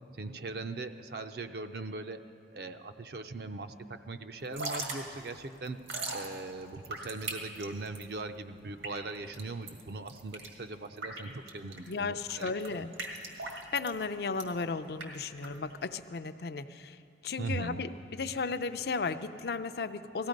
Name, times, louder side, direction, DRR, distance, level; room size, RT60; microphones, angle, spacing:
voice 1, 0.1-2.3 2.5-5.8 6.1-12.5 17.4-17.8, right 3 dB, 55° right, 8 dB, 0.5 m, -40 dB
Drip / Trickle dribble, 4.4-16.0, right 3 dB, 85° right, 1.8 m, -41 dB
voice 2, 11.9-12.9 13.4-17.0 17.2-20.3, left 4 dB, 55° left, 11 dB, 0.5 m, -35 dB
18.5 x 15.0 x 5.2 m, 2.6 s
head